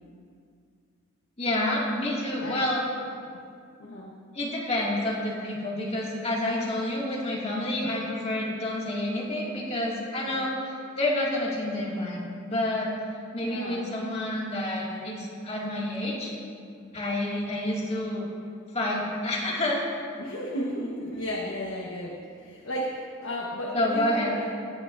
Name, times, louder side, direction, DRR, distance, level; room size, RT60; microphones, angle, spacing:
voice 1, 1.4-2.8 4.3-12.9 13.3-16.3 16.9-18.3 18.7-20.1 23.7-24.3, left 1 dB, 30° left, -5 dB, 1.9 m, -29 dB
voice 2, 3.8-4.1 10.1-10.5 13.4-13.8 20.2-24.5, equal, 70° left, -3 dB, 1.1 m, -34 dB
18.0 x 8.5 x 2.5 m, 2.2 s
head